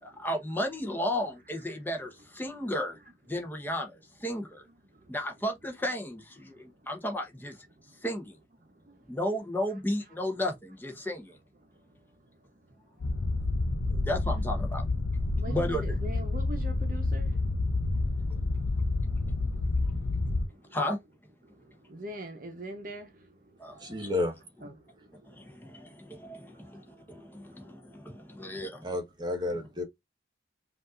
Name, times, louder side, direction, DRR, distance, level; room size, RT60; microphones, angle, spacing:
voice 1, 0.0-3.0 3.3-4.7 5.1-7.6 8.0-8.4 9.1-11.4 13.9-14.8 15.5-15.9 20.7-21.0 23.6-24.1 25.2-28.9, left 1 dB, 10° left, 0.9 m, -34 dB
voice 2, 6.4-6.8 7.8-8.0 8.6-9.1 11.6-12.1 12.3-13.9 15.3-17.9 18.2-20.8 21.4-24.0 24.6-25.6 25.9-28.6, right 1 dB, 50° right, 0.9 m, -47 dB
sound 1, 13.0-20.5, left 2 dB, 75° left, 0.6 m, -29 dB
voice 3, 23.8-24.4 28.8-29.8, left 2 dB, 25° right, 1.3 m, -31 dB
5.3 x 2.6 x 2.4 m
head